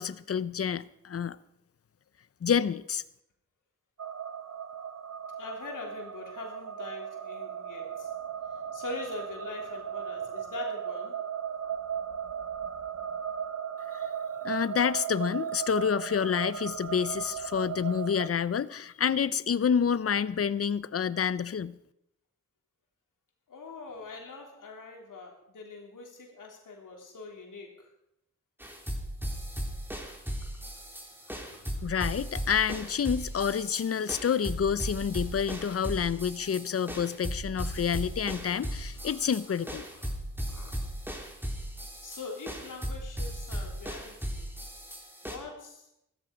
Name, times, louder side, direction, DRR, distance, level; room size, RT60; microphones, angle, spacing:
voice 1, 0.0-1.4 2.4-3.0 13.9-14.1 14.4-21.8 31.8-39.8, left 7 dB, 50° left, 17 dB, 0.7 m, -28 dB
sound 1, 4.0-18.3, right 8 dB, 55° right, 1.1 m, -37 dB
voice 2, 5.4-8.1 8.7-11.2 23.5-27.9 30.2-30.3 31.3-31.7 38.9-39.2 39.5-39.6 39.9-40.1 40.5-40.8 42.0-44.5 45.2-45.9, left 4 dB, 85° left, 1 dB, 3.4 m, -43 dB
sound 2, 28.6-45.4, equal, 5° right, 3.5 m, -37 dB
14.5 x 14.0 x 5.2 m, 0.80 s
cardioid pair, 55°, 31 cm